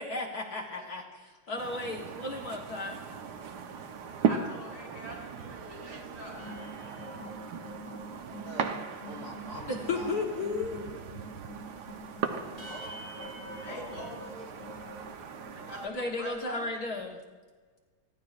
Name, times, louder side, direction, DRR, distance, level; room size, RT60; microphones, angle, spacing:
voice 1, 0.0-3.0 9.7-10.8 15.8-17.2, left 3 dB, 50° left, 0 dB, 1.7 m, -34 dB
sound 1, 1.6-15.9, right 6 dB, 60° right, 1.3 m, -38 dB
voice 2, 4.3-6.6 13.6-14.1 15.5-16.6, equal, 75° left, -2 dB, 5.9 m, -44 dB
sound 2, 6.4-15.7 16.2-16.4 16.6-17.0, equal, 25° left, 3.9 m, -46 dB
voice 3, 8.4-10.5, equal, 35° right, 0 dB, 3.0 m, -45 dB
voice 4, 12.7-14.7, right 2 dB, 80° right, -3 dB, 4.4 m, -49 dB
28.0 x 11.0 x 2.5 m, 1.4 s
omnidirectional pair, 2.3 m